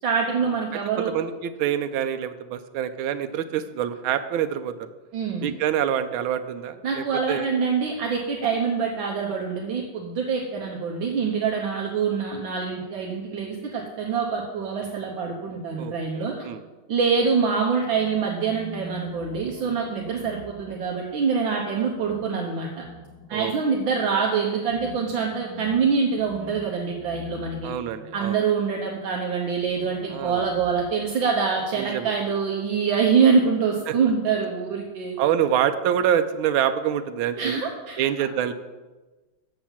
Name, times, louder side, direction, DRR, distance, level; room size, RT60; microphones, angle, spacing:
voice 1, 0.0-1.1 5.1-5.5 6.8-16.3 16.9-22.8 23.3-27.7 28.1-35.1 37.4-38.0, right 5 dB, 70° right, -1 dB, 1.7 m, -25 dB
voice 2, 1.0-4.9 5.4-7.5 15.8-16.6 20.1-20.3 23.3-23.5 27.6-28.4 30.1-30.5 31.8-32.1 33.9-34.0 35.2-37.6 38.0-38.5, right 10 dB, 85° right, 9 dB, 1.4 m, -26 dB
sound 1, 17.8-21.1 21.8-28.4 29.4-31.3, left 1 dB, 60° left, 3.8 m, -44 dB
7.5 x 7.0 x 7.3 m, 1.2 s
omnidirectional pair, 2.2 m